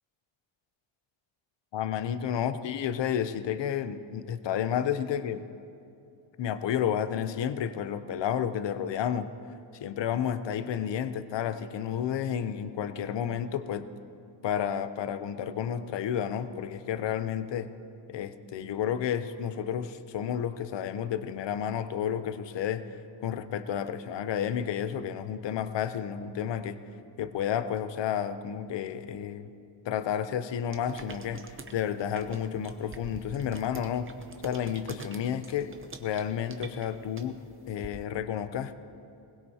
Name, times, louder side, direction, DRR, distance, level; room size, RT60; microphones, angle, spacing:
voice 1, 1.7-5.5 6.4-9.3 9.8-13.9 14.4-17.7 18.1-22.9 23.2-26.8 27.2-29.5 29.9-34.1 34.4-37.4 37.7-38.8, left 9 dB, 60° left, 11 dB, 0.7 m, -31 dB
sound 1, 30.7-37.9, right 4 dB, 25° right, 0.7 m, -46 dB
21.0 x 19.5 x 2.8 m, 2.6 s
wide cardioid pair, 180°, 49 cm